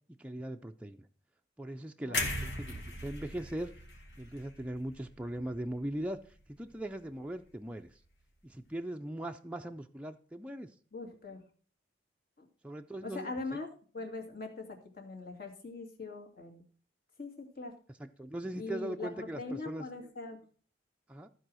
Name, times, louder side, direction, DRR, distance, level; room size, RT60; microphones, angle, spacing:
voice 1, 0.2-1.1 1.6-3.7 4.2-8.0 8.4-10.7 12.6-13.3 18.0-19.9 21.1-21.3, right 1 dB, 5° right, 3 dB, 0.4 m, -40 dB
sound 1, 2.1-6.2 6.5-6.7, left 2 dB, 80° left, 2.4 m, -39 dB
voice 2, 10.9-11.4 12.4-12.5 13.0-13.7 13.9-16.6 17.2-17.7 18.5-20.4, left 3 dB, 55° left, 2 dB, 2.4 m, -41 dB
14.5 x 4.9 x 6.2 m, 0.43 s
head